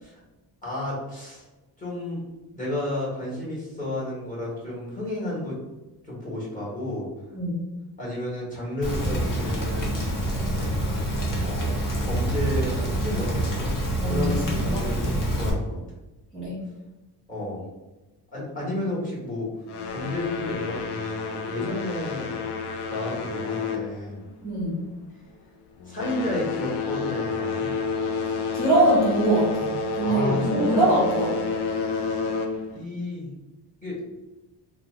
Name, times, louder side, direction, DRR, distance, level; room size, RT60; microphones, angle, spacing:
voice 1, 0.6-1.4 1.8-2.2 2.5-5.6 6.0-7.1 8.0-10.0 11.4-13.7 14.0-15.8 17.3-17.6 18.3-19.5 19.9-22.4 22.9-24.3 25.8-27.7 30.0-30.9 32.7-33.3 33.8-34.0, left 1 dB, 20° left, -6 dB, 1.3 m, -32 dB
Rain, 8.8-15.5, right 1 dB, 50° left, 0.9 m, -26 dB
voice 2, 14.0-14.8 16.3-16.6 24.4-24.8 28.5-31.3, right 1 dB, ahead, -9 dB, 1.1 m, -23 dB
sound 1, 19.7-24.6 24.9-25.2 25.8-32.8, left 4 dB, 75° left, 0.5 m, -30 dB
2.7 x 2.1 x 3.7 m, 1.1 s
cardioid pair, 120°, 41 cm